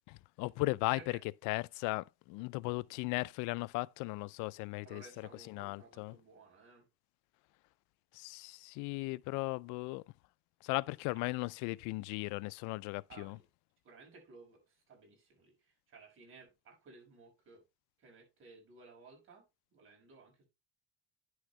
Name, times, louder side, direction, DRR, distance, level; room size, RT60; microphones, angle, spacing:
voice 1, 0.1-1.0 1.5-5.0 5.5-6.2 8.1-10.0 10.6-13.4, left 23 dB, 80° left, 0.5 m, -37 dB
voice 2, 0.8-1.2 4.8-6.9 11.1-11.2 13.1-13.4 13.8-17.6 18.0-19.4 19.7-20.5, right 4 dB, 45° right, 5.6 m, -57 dB
10.0 x 6.4 x 3.2 m
cardioid pair, 110°, 30 cm